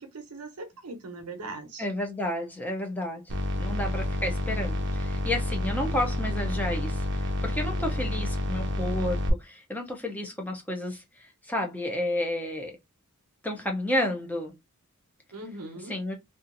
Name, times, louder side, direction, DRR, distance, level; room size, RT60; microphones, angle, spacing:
voice 1, 0.0-1.8 15.3-15.9, right 2 dB, 80° right, 0.8 m, -40 dB
voice 2, 1.8-12.8 13.4-14.6 15.9-16.2, left 1 dB, 5° left, 0.5 m, -31 dB
sound 1, 3.3-9.3, left 1 dB, 55° right, 0.6 m, -29 dB
2.7 x 2.4 x 2.5 m
head